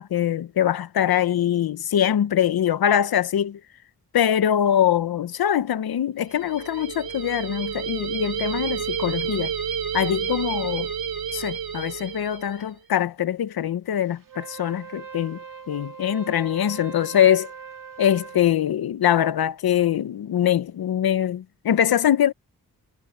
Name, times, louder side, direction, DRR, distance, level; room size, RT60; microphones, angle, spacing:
voice 1, 0.0-3.6 4.1-9.5 9.9-10.9 11.3-15.4 15.7-17.5 18.0-22.3, left 10 dB, 85° left, 0.9 m, -23 dB
sound 1, 6.3-12.7, right 7 dB, 80° right, 5.4 m, -30 dB
Wind instrument woodwind instrument, 14.2-18.5, right 6 dB, 60° right, 2.1 m, -40 dB
wide cardioid pair, 165°, 36 cm